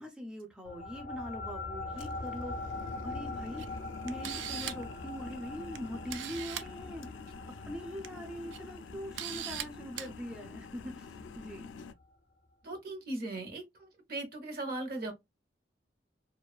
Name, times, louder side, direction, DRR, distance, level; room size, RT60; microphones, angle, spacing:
voice 1, 0.0-2.6 3.0-3.6 4.0-7.1 7.7-11.7, equal, 5° right, 0.4 m, -42 dB
sound 1, 0.7-11.5, left 2 dB, 50° left, 0.6 m, -42 dB
sound 2, 1.9-11.9, left 5 dB, 90° left, 0.3 m, -48 dB
Camera, 3.6-3.7 4.1-4.9 5.7-5.8 6.1-6.7 7.8-8.1 8.5-8.6 9.2-9.6 10.0-10.1, right 10 dB, 75° right, 0.3 m, -39 dB
voice 2, 12.6-13.6 14.1-15.1, right 2 dB, 55° right, 0.8 m, -37 dB
2.4 x 2.2 x 2.3 m
head